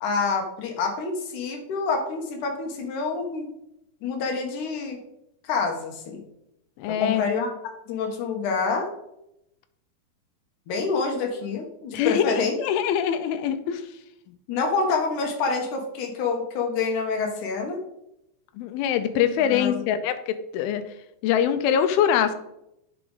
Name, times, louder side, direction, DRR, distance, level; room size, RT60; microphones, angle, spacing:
voice 1, 0.0-3.5 4.0-5.0 5.4-6.2 6.9-7.5 7.9-8.9 10.7-12.6 14.5-17.8 19.5-19.8, left 4 dB, 65° left, 2 dB, 2.5 m, -27 dB
voice 2, 6.8-7.2 11.9-13.8 18.6-20.8 21.2-22.3, left 9 dB, 85° left, 10 dB, 2.5 m, -23 dB
10.0 x 6.1 x 3.9 m, 0.83 s
omnidirectional pair, 4.4 m